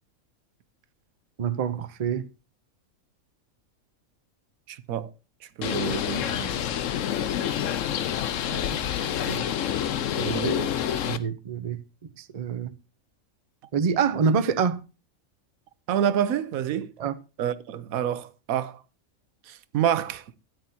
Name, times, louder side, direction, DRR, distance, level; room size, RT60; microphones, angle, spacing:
voice 1, 1.4-2.2 8.5-8.8 9.2-9.4 11.1-11.8 12.2-12.7 13.7-14.8 17.0-17.1, right 6 dB, 40° right, 0.5 m, -26 dB
voice 2, 4.7-5.1 5.6-6.6 10.2-10.7 15.9-16.9 17.4-18.8 19.5-20.2, right 9 dB, 85° right, 1.1 m, -28 dB
Bird, 5.6-11.2, left 9 dB, 70° left, 1.1 m, -28 dB
13.0 x 9.4 x 2.7 m
omnidirectional pair, 1.4 m